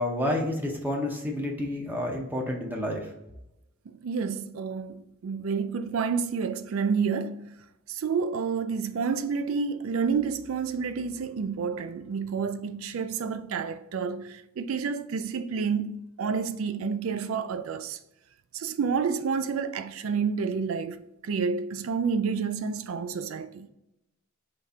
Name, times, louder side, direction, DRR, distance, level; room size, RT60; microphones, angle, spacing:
voice 1, 0.0-3.1, left 1 dB, 10° right, 0.7 m, -29 dB
voice 2, 3.9-7.5 7.9-18.0 18.5-23.7, right 5 dB, 75° right, 0.4 m, -29 dB
4.0 x 3.3 x 3.5 m
head